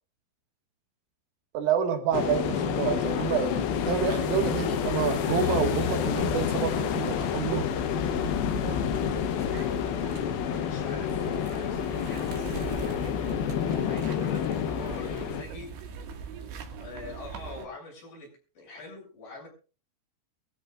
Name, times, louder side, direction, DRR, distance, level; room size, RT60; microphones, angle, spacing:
voice 1, 1.5-7.7, right 8 dB, 80° right, 5 dB, 4.5 m, -28 dB
sound 1, 2.1-15.4, left 9 dB, 75° left, 2.2 m, -29 dB
sound 2, 3.8-17.7, right 6 dB, 60° right, 3.6 m, -40 dB
voice 2, 10.4-15.9 16.8-19.5, left 3 dB, 45° left, -1 dB, 8.9 m, -44 dB
23.5 x 14.0 x 2.5 m, 0.36 s
omnidirectional pair, 5.8 m